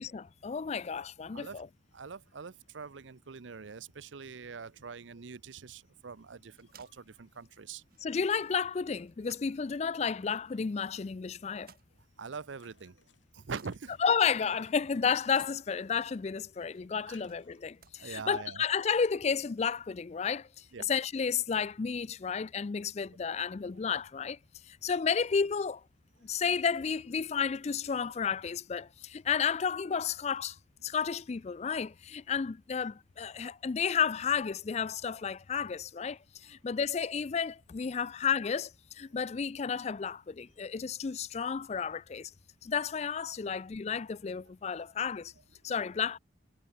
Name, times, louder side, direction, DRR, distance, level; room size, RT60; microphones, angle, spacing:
voice 1, 0.0-1.7 8.0-11.7 14.0-24.4 24.7-25.8 26.2-30.6 30.8-42.3 42.6-45.3 45.6-46.2, left 6 dB, 35° left, 0.4 m, -32 dB
voice 2, 1.9-7.8 12.2-13.0 13.3-14.0 17.1-17.2 18.0-18.6 20.7-20.8 43.4-43.5, right 5 dB, 80° right, 0.7 m, -44 dB
sound 1, 6.0-19.2, right 6 dB, 50° right, 2.3 m, -65 dB
sound 2, 12.6-15.7 16.0-17.6, left 5 dB, 80° left, 4.9 m, -64 dB
head